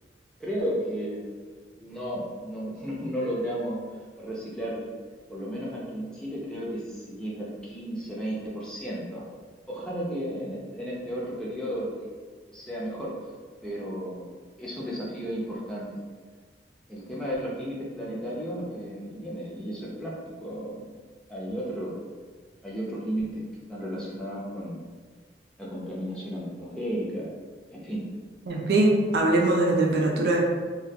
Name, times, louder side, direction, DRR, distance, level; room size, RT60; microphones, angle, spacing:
voice 1, 0.4-1.2 1.8-3.8 4.2-4.9 5.3-9.3 9.7-11.9 12.4-13.1 13.6-14.3 14.6-15.9 16.9-20.9 21.3-22.0 22.6-23.3 23.7-24.8 25.6-27.4 27.7-28.1, equal, 5° left, -6 dB, 0.4 m, -33 dB
voice 2, 28.5-30.4, right 2 dB, 65° right, 0 dB, 0.4 m, -22 dB
2.3 x 2.2 x 2.6 m, 1.5 s
head